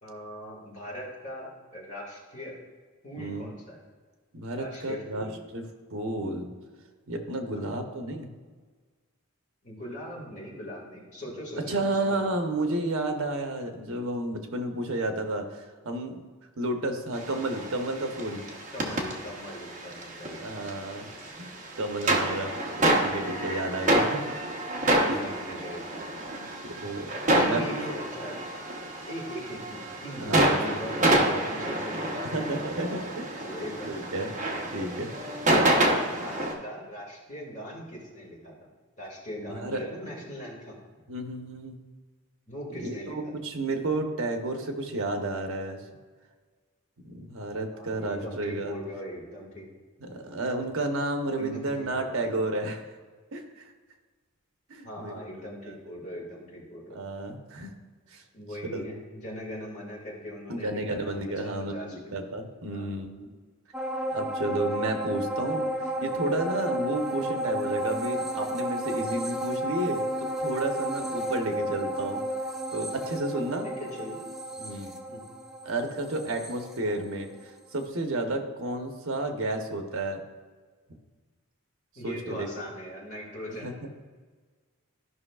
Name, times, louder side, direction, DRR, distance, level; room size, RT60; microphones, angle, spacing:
voice 1, 0.0-2.6 3.0-3.8 4.5-5.3 7.5-7.7 9.6-12.3 18.7-20.7 25.0-26.3 27.3-28.4 29.0-34.0 35.7-38.5 39.0-40.8 42.5-43.2 47.7-49.7 51.4-52.2 54.8-57.0 58.3-62.1 62.7-63.1 73.6-74.2 75.1-75.2 82.0-83.7, equal, 35° left, -4 dB, 1.9 m, -40 dB
voice 2, 3.2-3.5 4.3-5.6 5.9-6.5 7.1-8.3 11.7-16.2 16.6-18.4 20.4-21.1 21.4-24.2 25.1-25.2 26.6-27.8 30.2-30.8 31.1-31.4 32.2-33.3 33.8-34.3 34.7-35.1 39.4-39.8 41.1-41.8 42.7-45.8 47.0-48.8 50.0-52.9 53.3-53.7 54.7-55.2 55.6-55.7 56.9-57.7 58.1-58.2 58.7-58.9 60.5-63.3 64.1-70.0 70.4-72.2 72.7-73.7 74.6-74.9 75.6-77.3 77.7-80.2 82.0-82.7 83.5-83.9, right 2 dB, 65° right, 4 dB, 0.9 m, -32 dB
sound 1, 17.1-36.5, right 1 dB, 35° right, 0.9 m, -28 dB
sound 2, 63.7-77.4 77.8-77.9, right 1 dB, ahead, 0.6 m, -32 dB
12.5 x 5.5 x 2.4 m, 1.5 s
head